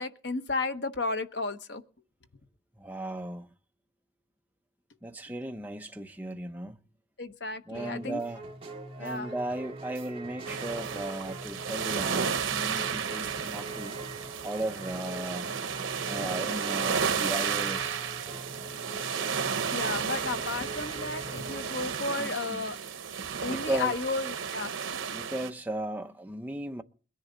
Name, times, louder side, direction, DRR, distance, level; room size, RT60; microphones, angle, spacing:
voice 1, 0.0-1.8 7.2-8.2 9.0-9.3 19.7-22.8 23.4-25.0, left 3 dB, 60° left, 1.0 m, -33 dB
voice 2, 2.8-3.5 5.0-6.8 7.7-8.4 9.0-13.9 14.4-15.5 16.1-18.0 22.2-22.6 23.4-24.0 25.1-26.8, right 1 dB, 10° right, 0.8 m, -36 dB
sound 1, 7.7-21.8, right 2 dB, 30° right, 2.1 m, -43 dB
sound 2, 10.4-25.5, right 6 dB, 85° right, 0.9 m, -33 dB
22.0 x 10.5 x 3.9 m
head